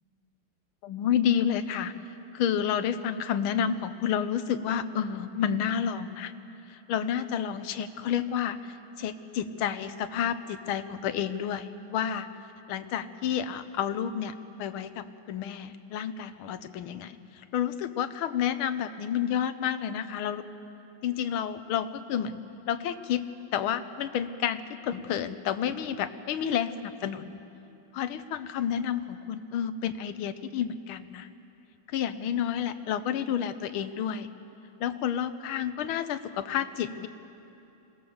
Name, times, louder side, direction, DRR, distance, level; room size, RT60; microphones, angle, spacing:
voice 1, 0.8-1.9 2.3-6.3 6.7-12.3 12.7-14.3 14.6-20.4 21.0-22.4 22.7-23.2 23.5-27.4 27.9-31.3 31.9-34.3 34.8-37.1, left 9 dB, 85° left, 11 dB, 1.7 m, -30 dB
25.0 x 18.5 x 7.1 m, 2.8 s
omnidirectional pair, 2.2 m